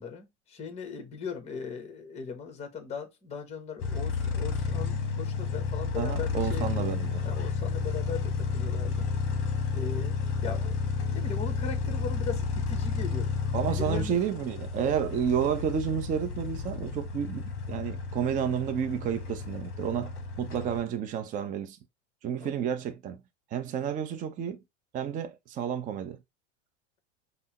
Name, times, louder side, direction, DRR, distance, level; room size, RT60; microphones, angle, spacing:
voice 1, 0.0-6.9 7.2-9.1 9.7-10.2 10.4-10.8 11.1-13.3 13.7-14.2 22.4-22.6, left 5 dB, 20° left, 1.0 m, -39 dB
sound 1, 3.8-20.8, left 5 dB, 35° left, 1.1 m, -31 dB
voice 2, 5.9-7.2 13.5-21.8 22.2-23.2 23.5-24.6 24.9-26.2, right 8 dB, 25° right, 0.5 m, -31 dB
5.3 x 2.0 x 2.9 m
hypercardioid pair, 110°, 36 cm